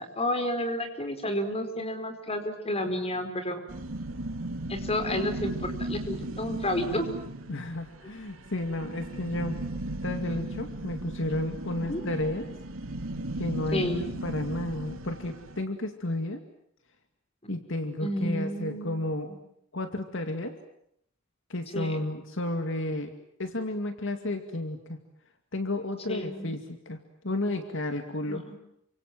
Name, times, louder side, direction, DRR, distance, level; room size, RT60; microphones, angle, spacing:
voice 1, 0.0-3.6 4.7-7.1 11.9-12.0 13.7-14.0 17.4-17.5 18.0-19.4 21.7-22.0 26.1-26.5 28.3-28.6, left 1 dB, 30° left, 8 dB, 4.8 m, -31 dB
sound 1, 3.7-15.6, right 1 dB, 80° right, 2.8 m, -36 dB
voice 2, 7.5-9.6 10.0-12.5 13.4-16.4 17.5-19.3 19.7-20.6 21.5-23.1 23.4-25.0 25.5-27.0 27.2-28.4, left 1 dB, 65° left, 7 dB, 2.3 m, -32 dB
29.5 x 26.0 x 7.6 m, 0.72 s
head